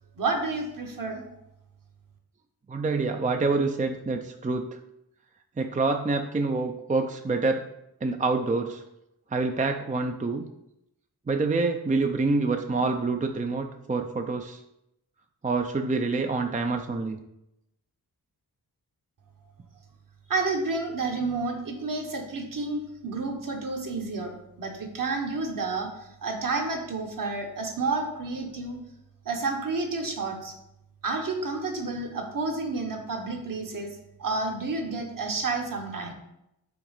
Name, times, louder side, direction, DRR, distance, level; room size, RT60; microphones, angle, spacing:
voice 1, 0.2-1.2 20.3-24.3 24.6-28.8 29.2-30.5 31.0-33.9 34.2-36.1, right 3 dB, 55° right, 2 dB, 1.4 m, -30 dB
voice 2, 2.7-4.7 5.6-7.6 8.0-8.8 9.3-10.4 11.3-14.6 15.4-17.2, right 3 dB, 20° right, 5 dB, 0.5 m, -26 dB
6.0 x 3.8 x 5.5 m, 0.84 s
cardioid pair, 70°, 39 cm